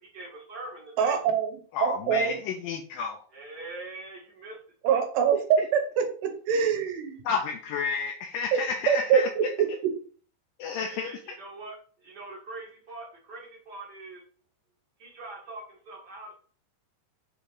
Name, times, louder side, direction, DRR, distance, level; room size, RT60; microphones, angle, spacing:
voice 1, 0.0-1.2 3.3-4.6 10.8-14.2 15.0-16.3, right 2 dB, 45° right, -2 dB, 1.3 m, -43 dB
voice 2, 1.0-1.5 1.8-2.4 4.8-7.2 8.5-8.6 8.9-10.0, right 7 dB, 90° right, 5 dB, 3.4 m, -24 dB
voice 3, 1.7-3.2 7.3-9.3 10.6-11.1, left 5 dB, 80° left, 4 dB, 2.0 m, -31 dB
7.8 x 3.7 x 4.9 m, 0.43 s
omnidirectional pair, 4.7 m